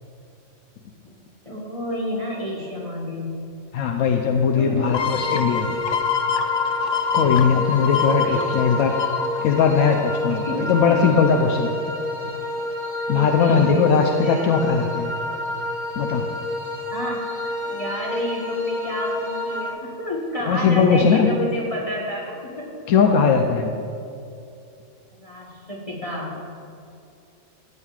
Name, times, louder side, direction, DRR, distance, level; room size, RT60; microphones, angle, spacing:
voice 1, 1.4-3.5 4.6-4.8 8.2-8.5 10.4-11.1 13.1-14.4 16.9-17.2 17.6-22.8 25.1-26.5, left 1 dB, 30° left, -4 dB, 1.2 m, -30 dB
voice 2, 3.7-5.7 7.1-9.0 9.4-11.7 13.1-15.1 16.0-16.3 20.5-21.3 22.9-23.7, left 6 dB, 85° left, 2 dB, 1.0 m, -19 dB
sound 1, 4.8-19.7, left 1 dB, 25° right, 1.0 m, -29 dB
sound 2, 4.9-10.4 10.9-11.0, left 6 dB, 65° left, 0.4 m, -26 dB
15.0 x 8.8 x 2.4 m, 2.6 s
omnidirectional pair, 1.3 m